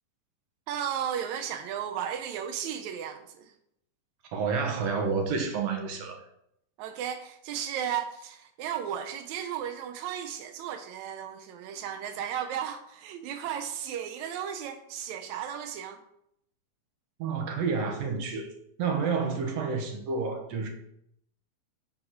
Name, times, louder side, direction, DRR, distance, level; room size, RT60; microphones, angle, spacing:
voice 1, 0.7-3.5 6.8-16.0, right 9 dB, 85° right, 1.6 m, -35 dB
voice 2, 4.3-6.2 17.2-18.5 18.8-20.7, right 5 dB, 60° right, 2.1 m, -29 dB
9.5 x 4.3 x 5.9 m
omnidirectional pair, 4.1 m